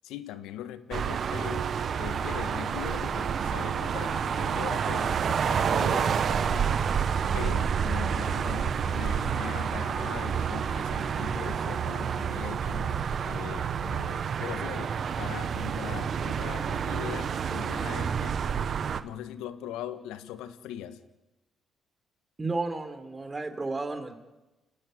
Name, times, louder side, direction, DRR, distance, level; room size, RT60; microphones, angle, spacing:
voice 1, 0.0-18.4 19.0-21.0, left 11 dB, 80° left, 11 dB, 1.6 m, -41 dB
sound 1, 0.9-19.0, right 7 dB, 55° right, 1.3 m, -29 dB
voice 2, 22.4-24.1, right 3 dB, 25° right, 7 dB, 4.0 m, -32 dB
29.5 x 12.0 x 9.6 m, 1.0 s
supercardioid pair, 60°, 0 cm